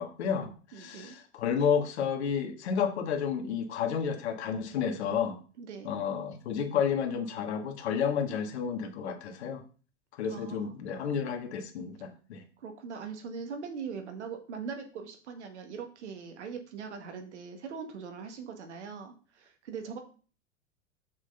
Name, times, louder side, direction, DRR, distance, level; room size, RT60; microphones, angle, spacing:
voice 1, 0.0-5.4 5.8-9.6 10.2-12.4, left 7 dB, 65° left, 5 dB, 1.6 m, -31 dB
voice 2, 0.7-1.1 5.6-5.9 10.3-10.7 12.6-20.0, right 6 dB, 70° right, 5 dB, 1.8 m, -41 dB
6.5 x 6.2 x 3.9 m, 0.39 s
hypercardioid pair, 95°, 36 cm